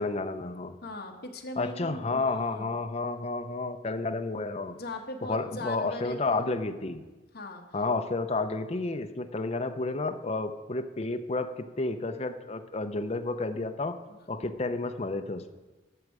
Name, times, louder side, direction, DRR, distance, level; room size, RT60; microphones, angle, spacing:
voice 1, 0.0-0.8 1.6-4.8 5.3-7.0 7.7-14.0 14.3-15.5, left 3 dB, 35° left, 8 dB, 0.5 m, -31 dB
voice 2, 0.8-2.7 4.7-6.5 7.3-7.6 14.1-14.2, left 2 dB, 55° left, 3 dB, 1.1 m, -39 dB
12.5 x 6.4 x 4.8 m, 1.2 s
head